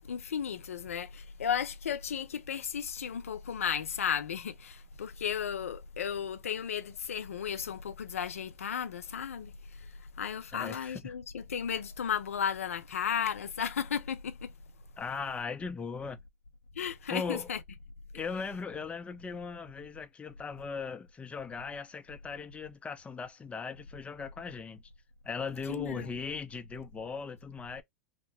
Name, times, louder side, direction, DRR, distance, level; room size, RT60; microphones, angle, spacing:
voice 1, 0.1-9.5 10.2-14.5 16.8-17.6 25.7-26.1, left 8 dB, 85° left, 0.4 m, -34 dB
voice 2, 10.5-11.2 15.0-16.2 17.1-17.5 18.1-24.8 25.2-27.8, left 5 dB, 15° left, 0.5 m, -38 dB
2.8 x 2.0 x 3.4 m
hypercardioid pair, 95°, 7 cm